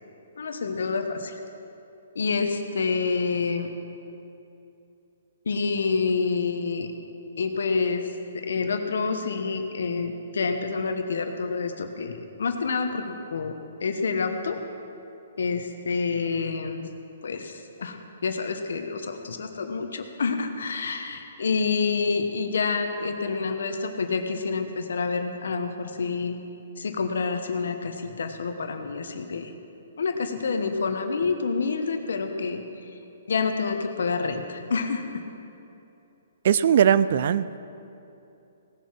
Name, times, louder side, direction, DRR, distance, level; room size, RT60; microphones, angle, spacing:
voice 1, 0.4-1.3 2.1-3.7 5.4-6.9 7.4-8.1 8.3-13.0 13.3-13.5 13.8-14.6 15.4-16.9 17.2-26.4 26.8-29.5 30.0-32.6 33.3-35.0, left 4 dB, 75° left, 6 dB, 1.2 m, -28 dB
voice 2, 36.4-37.6, right 9 dB, 55° right, 16 dB, 0.4 m, -20 dB
17.5 x 7.6 x 6.0 m, 2.8 s
hypercardioid pair, 140°, 0 cm